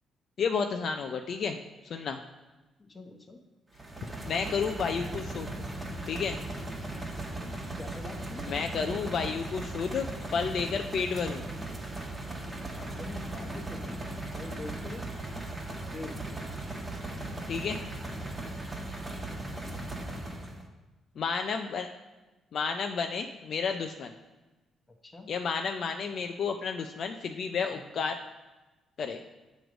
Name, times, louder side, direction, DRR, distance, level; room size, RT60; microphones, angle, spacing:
voice 1, 0.4-1.6 1.8-2.2 4.2-5.5 6.1-6.4 8.5-11.4 17.5-17.8 21.2-21.9 22.5-24.1 25.3-28.2 29.0-29.2, left 5 dB, 60° left, 5 dB, 0.4 m, -31 dB
voice 2, 2.8-3.4 7.4-8.5 12.7-14.0 14.3-15.0 15.9-16.4 18.4-18.7 19.6-19.7 25.0-25.3 27.7-27.9, left 2 dB, 25° left, 4 dB, 1.0 m, -45 dB
sound 1, 3.8-20.6, right 2 dB, 20° right, 1.2 m, -38 dB
7.7 x 3.1 x 5.1 m, 1.1 s
cardioid pair, 90°, 0 cm